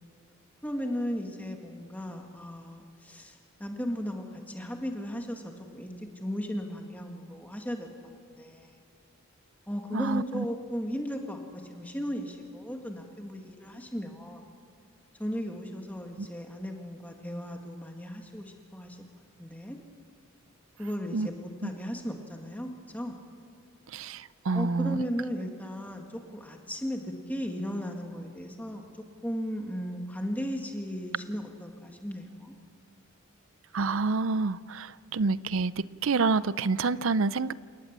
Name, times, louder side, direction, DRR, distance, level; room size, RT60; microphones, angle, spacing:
voice 1, 0.6-7.9 8.2-8.8 9.7-14.5 15.2-19.0 19.4-19.8 20.8-23.2 24.5-26.0 26.3-28.8 29.2-32.5, equal, 5° left, 2 dB, 1.9 m, -36 dB
voice 2, 9.9-10.4 16.2-16.3 21.1-21.3 21.6-21.7 23.9-25.0 33.7-37.5, right 4 dB, 65° right, 18 dB, 0.5 m, -28 dB
28.5 x 18.0 x 7.4 m, 2.4 s
head